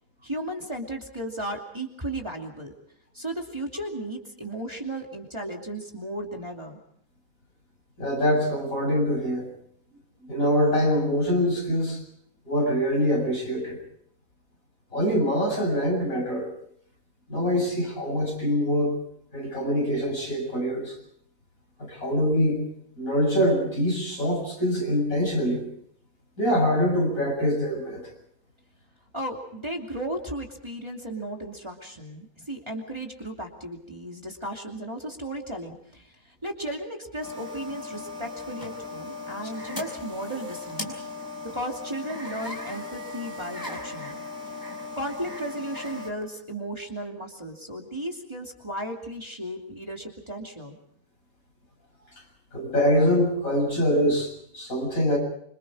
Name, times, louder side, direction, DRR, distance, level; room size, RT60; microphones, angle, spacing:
voice 1, 0.2-2.7 3.1-6.8 29.1-40.9 41.5-44.2 45.0-50.8, right 1 dB, 20° right, 1 dB, 2.7 m, -35 dB
voice 2, 8.0-9.5 10.3-12.0 12.5-13.8 14.9-16.5 17.3-19.0 19.3-21.0 21.8-22.7 23.0-25.6 26.4-28.1 52.5-55.2, equal, 75° left, 0 dB, 7.8 m, -24 dB
sound 1, 37.2-46.1, left 3 dB, 15° left, 4.5 m, -37 dB
26.5 x 25.0 x 4.9 m, 0.67 s
omnidirectional pair, 1.5 m